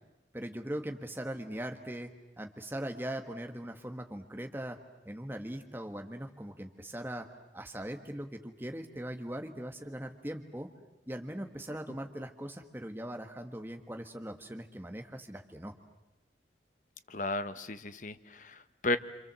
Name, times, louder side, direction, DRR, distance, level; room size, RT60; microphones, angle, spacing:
voice 1, 0.3-2.1 2.4-4.8 5.0-10.7 11.1-15.7, right 1 dB, 10° right, 4 dB, 1.4 m, -40 dB
voice 2, 17.1-19.0, left 2 dB, 45° left, 10 dB, 1.1 m, -34 dB
27.0 x 27.0 x 7.6 m, 0.97 s
head